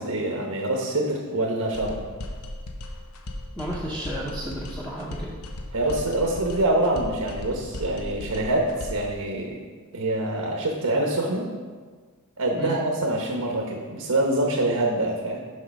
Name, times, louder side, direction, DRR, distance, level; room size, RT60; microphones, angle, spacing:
voice 1, 0.0-2.0 5.7-9.6 9.9-11.5 12.4-15.4, right 1 dB, 80° right, 0 dB, 1.0 m, -25 dB
sound 1, 1.7-9.1, left 1 dB, 90° left, 0.8 m, -36 dB
voice 2, 3.6-5.3 12.5-12.8, equal, 10° left, -5 dB, 0.7 m, -32 dB
6.5 x 5.3 x 5.2 m, 1.5 s
head